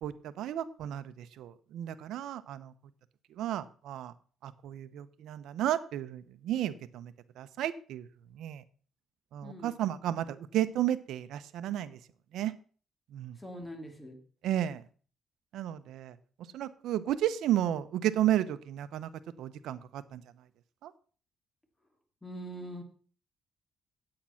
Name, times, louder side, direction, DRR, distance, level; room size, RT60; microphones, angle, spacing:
voice 1, 0.0-2.7 3.4-4.1 4.4-8.1 8.3-8.6 9.3-12.0 12.3-12.5 13.1-13.4 14.4-14.8 15.5-16.2 16.5-19.1 19.4-20.2 20.8-20.9, right 12 dB, 80° right, 13 dB, 0.7 m, -33 dB
voice 2, 9.4-9.7 13.4-14.2 22.2-22.8, equal, 10° left, 4 dB, 2.7 m, -43 dB
8.7 x 8.6 x 5.7 m, 0.42 s
cardioid pair, 90°, 0 cm